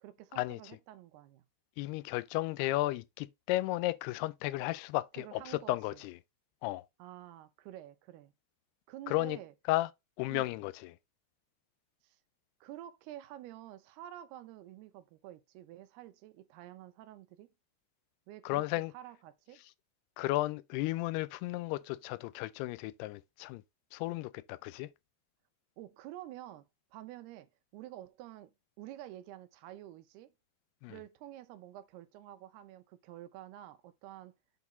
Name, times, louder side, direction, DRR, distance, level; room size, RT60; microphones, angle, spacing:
voice 1, 0.0-1.4 5.2-6.0 7.0-8.3 8.9-9.5 10.3-10.6 12.0-12.2 12.6-17.5 18.3-18.6 18.9-19.6 25.8-26.7 26.9-30.3 30.9-34.3, right 13 dB, 85° right, 2.8 m, -49 dB
voice 2, 1.8-6.2 6.6-6.9 9.1-9.4 9.7-9.9 10.2-11.0 18.4-18.9 20.2-23.6 23.9-24.9 30.8-31.0, left 18 dB, 90° left, 2.6 m, -34 dB
8.3 x 4.1 x 3.9 m
omnidirectional pair, 4.5 m